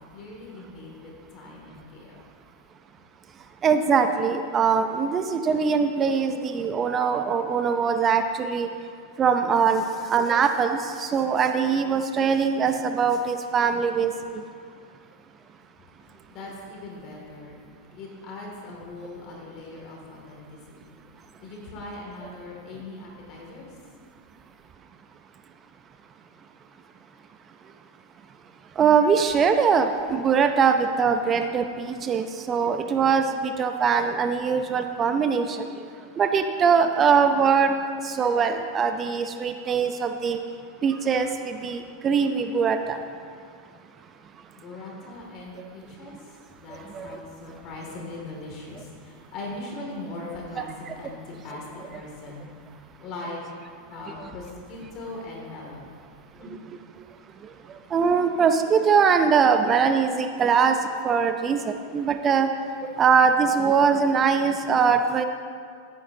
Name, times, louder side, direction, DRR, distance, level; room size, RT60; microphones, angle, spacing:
voice 1, 0.0-2.2 15.9-24.0 44.6-53.4 53.9-55.9 56.4-56.6, left 2 dB, 45° left, -1 dB, 2.3 m, -40 dB
voice 2, 3.6-8.7 9.2-14.4 28.8-35.7 36.2-37.8 38.0-40.4 40.8-43.0 46.9-47.2 57.9-60.8 61.0-62.5 63.0-65.2, right 6 dB, 30° right, 7 dB, 0.6 m, -22 dB
13.5 x 9.4 x 2.8 m, 2.2 s
hypercardioid pair, 95°, 0 cm